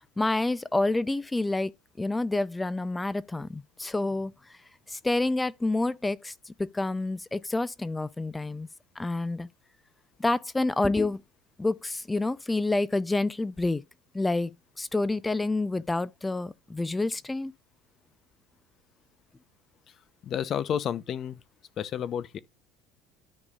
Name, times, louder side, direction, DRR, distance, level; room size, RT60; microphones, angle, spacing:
voice 1, 0.2-1.7 2.0-4.3 4.9-8.7 9.0-9.5 10.2-11.2 11.6-13.8 14.1-14.5 14.8-17.5, left 2 dB, 10° left, 0.6 m, -28 dB
voice 2, 20.2-21.4 21.8-22.4, left 9 dB, 40° left, 0.8 m, -30 dB
13.0 x 5.2 x 2.5 m
cardioid pair, 130°, 0 cm